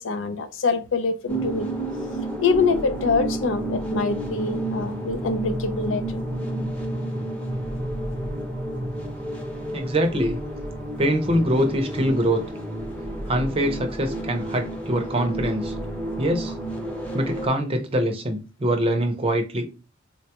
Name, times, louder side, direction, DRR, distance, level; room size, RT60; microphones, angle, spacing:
voice 1, 0.0-1.7 2.4-6.2, left 4 dB, 75° left, 0.5 m, -25 dB
sound 1, 1.3-17.5, right 1 dB, 5° left, 0.7 m, -30 dB
voice 2, 9.7-10.4 11.0-12.4 13.3-15.7 16.2-16.5 17.1-19.6, right 1 dB, 30° right, 0.6 m, -23 dB
3.8 x 2.2 x 2.8 m
head